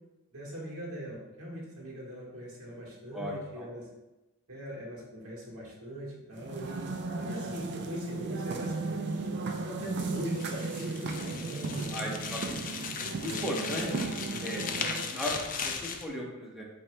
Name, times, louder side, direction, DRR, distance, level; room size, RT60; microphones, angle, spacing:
voice 1, 0.3-3.9 4.5-6.9 7.2-8.7 9.6-11.9 13.8-14.0, equal, 75° right, -4 dB, 1.4 m, -40 dB
voice 2, 3.1-3.7 11.9-12.7 13.2-13.9 14.4-14.6 15.1-16.6, equal, ahead, -3 dB, 0.8 m, -36 dB
sound 1, 6.3-15.3, right 3 dB, 55° right, 0.4 m, -36 dB
sound 2, 10.1-16.1, left 5 dB, 40° left, 0.4 m, -37 dB
7.8 x 2.7 x 2.2 m, 1.0 s
head